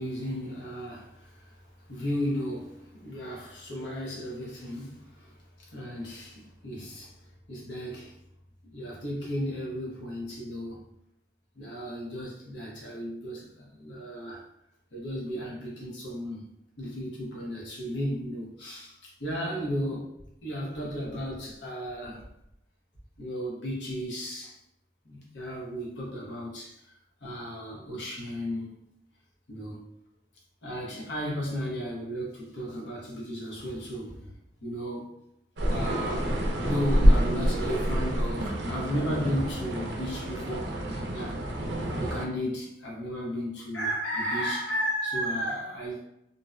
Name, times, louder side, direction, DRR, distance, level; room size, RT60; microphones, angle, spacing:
voice 1, 0.0-1.6 1.9-5.3 5.7-7.1 7.5-8.2 8.7-10.8 11.6-14.5 14.9-16.5 16.8-20.1 20.4-22.2 23.2-24.6 25.0-26.9 27.2-28.7 29.5-29.8 30.6-34.3 34.6-35.1 35.7-36.4 36.6-40.8 41.1-41.4 41.9-46.0, equal, 75° left, -3 dB, 0.7 m, -34 dB
sound 1, 35.6-42.2, equal, 70° right, 0.5 m, -27 dB
2.6 x 2.0 x 2.4 m, 0.83 s
head